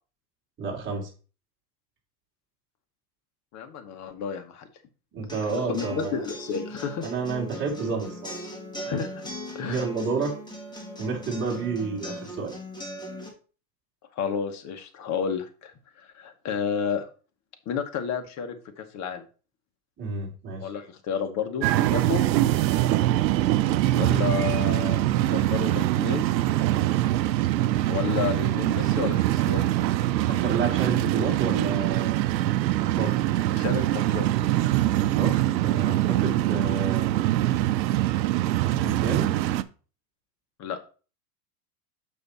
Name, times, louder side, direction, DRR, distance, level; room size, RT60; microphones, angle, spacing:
voice 1, 0.6-1.1 5.1-6.2 7.0-8.4 9.7-10.4 11.0-12.5 20.0-20.7 30.3-32.2 32.7-33.1 34.9-37.1 38.8-39.3, right 4 dB, 25° right, -1 dB, 2.8 m, -30 dB
voice 2, 3.5-4.7 5.5-7.0 8.8-9.3 9.5-9.8 14.1-17.1 17.7-19.3 20.6-21.7 21.9-22.2 23.9-26.3 27.9-29.7 33.6-34.3 40.6-40.8, left 7 dB, 35° left, 7 dB, 1.3 m, -31 dB
sound 1, 5.3-13.3, equal, 10° left, 1.9 m, -39 dB
sound 2, 21.6-39.6, right 14 dB, 90° right, 0.7 m, -23 dB
6.8 x 5.7 x 4.1 m, 0.36 s
supercardioid pair, 130°, 50 cm